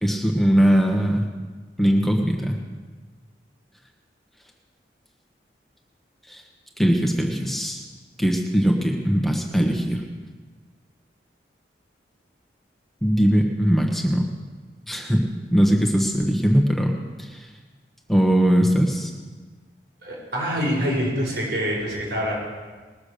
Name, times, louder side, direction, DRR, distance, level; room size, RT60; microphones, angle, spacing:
voice 1, 0.0-1.2 1.8-2.6 6.3-6.4 6.8-7.8 8.2-10.0 13.0-14.2 14.9-17.3 18.1-19.1, equal, ahead, 1 dB, 1.3 m, -20 dB
voice 2, 20.0-22.4, equal, 70° right, -5 dB, 5.4 m, -25 dB
20.0 x 7.2 x 6.7 m, 1.4 s
head